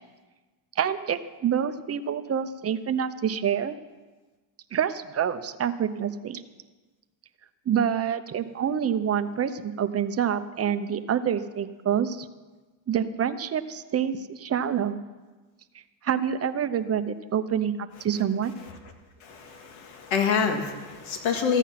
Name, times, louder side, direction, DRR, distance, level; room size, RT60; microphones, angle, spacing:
voice 1, 0.8-3.8 4.7-6.4 7.7-12.3 12.9-15.0 16.0-17.7 18.0-18.5, right 8 dB, 30° right, 10 dB, 0.8 m, -27 dB
voice 2, 19.2-21.6, left 6 dB, 70° left, 4 dB, 2.0 m, -27 dB
14.0 x 9.1 x 5.9 m, 1.3 s
supercardioid pair, 95°, 49 cm